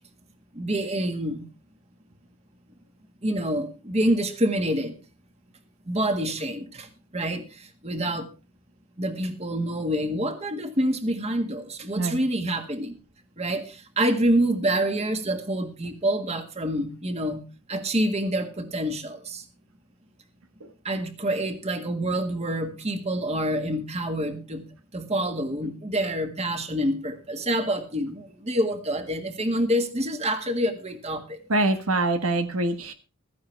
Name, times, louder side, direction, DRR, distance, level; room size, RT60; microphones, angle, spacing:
voice 1, 0.6-1.5 3.2-5.0 5.9-6.9 7.1-8.3 9.0-12.9 13.4-17.4 17.7-19.4 20.9-24.6 24.9-31.4, right 1 dB, 30° right, 7 dB, 1.8 m, -27 dB
voice 2, 31.5-32.9, right 2 dB, 90° right, 8 dB, 1.6 m, -24 dB
15.5 x 13.5 x 3.4 m, 0.32 s
head